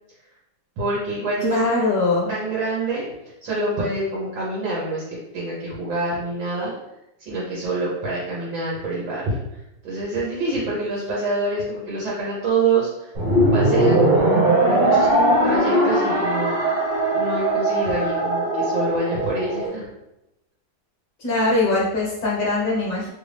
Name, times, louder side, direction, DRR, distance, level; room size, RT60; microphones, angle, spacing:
voice 1, 0.8-1.6 2.3-3.1 3.4-5.0 5.3-6.7 7.2-9.4 9.8-13.1 13.5-15.1 15.4-16.8 17.1-19.9, right 2 dB, 70° right, -6 dB, 1.7 m, -26 dB
voice 2, 1.4-2.3 21.2-23.1, left 2 dB, 45° left, -4 dB, 1.3 m, -21 dB
sound 1, 13.1-19.7, right 1 dB, 55° right, 1.8 m, -19 dB
3.6 x 2.5 x 3.3 m, 0.90 s
omnidirectional pair, 2.1 m